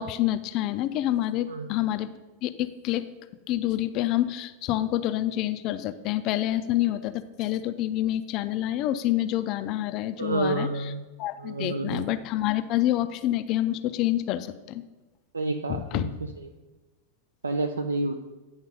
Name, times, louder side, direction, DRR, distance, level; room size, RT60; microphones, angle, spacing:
voice 1, 0.0-2.1 2.4-3.0 3.5-10.7 11.2-14.8 15.7-16.1, left 14 dB, 40° left, 11 dB, 0.4 m, -27 dB
voice 2, 10.2-11.1 11.4-12.1 15.3-16.5 17.4-18.2, right 2 dB, 75° right, 6 dB, 0.4 m, -29 dB
9.6 x 3.6 x 5.3 m, 1.1 s
figure-of-eight pair, 90°, 0 cm